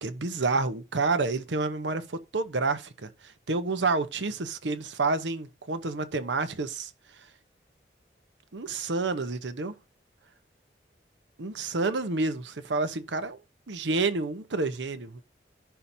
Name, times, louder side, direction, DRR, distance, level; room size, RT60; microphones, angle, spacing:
voice 1, 0.0-6.9 7.2-7.3 8.5-9.7 11.4-13.4 13.7-15.2, right 3 dB, 85° right, 0.9 m, -29 dB
15.5 x 5.7 x 2.7 m
head